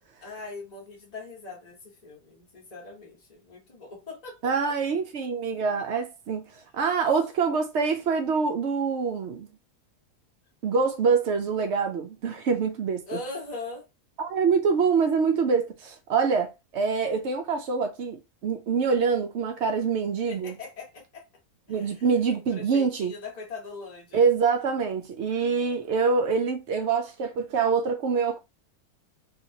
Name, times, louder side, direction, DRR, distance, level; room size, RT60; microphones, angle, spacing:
voice 1, 0.2-4.5 13.1-13.9 20.3-21.2 21.7-22.1 22.5-24.3, left 3 dB, 30° left, 0.9 m, -41 dB
voice 2, 4.4-9.5 10.6-13.2 14.2-18.2 18.4-20.5 21.7-23.1 24.1-28.4, right 5 dB, 65° right, 0.7 m, -25 dB
2.9 x 2.8 x 2.6 m
omnidirectional pair, 1.6 m